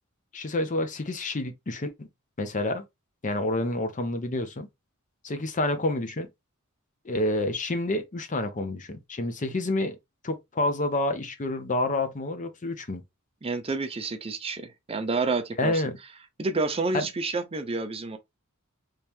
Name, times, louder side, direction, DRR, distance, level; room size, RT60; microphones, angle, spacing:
voice 1, 0.3-2.1 2.4-2.8 3.2-4.7 5.2-6.3 7.0-10.0 10.2-13.0 15.6-16.0 16.9-17.1, left 2 dB, 35° left, 0.7 m, -28 dB
voice 2, 13.4-15.8 16.4-18.2, right 3 dB, 25° right, 0.5 m, -29 dB
3.2 x 2.9 x 3.4 m
head